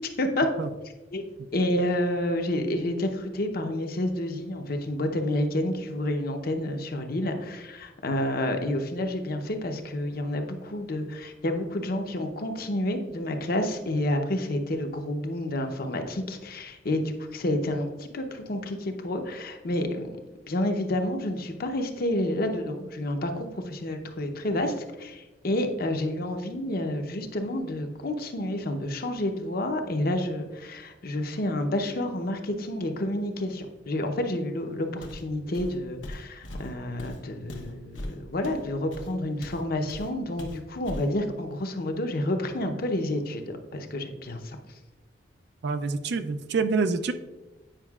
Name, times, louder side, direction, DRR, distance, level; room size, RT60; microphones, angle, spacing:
voice 1, 1.5-20.1 20.5-44.6, left 1 dB, 55° left, 5 dB, 0.7 m, -29 dB
Walk footsteps, 35.0-35.3 35.5-39.6 39.9-40.1 40.4-41.1, left 1 dB, 90° left, 0.9 m, -39 dB
voice 2, 45.6-47.1, right 4 dB, 60° right, 10 dB, 0.4 m, -26 dB
8.9 x 5.4 x 2.4 m, 1.1 s
head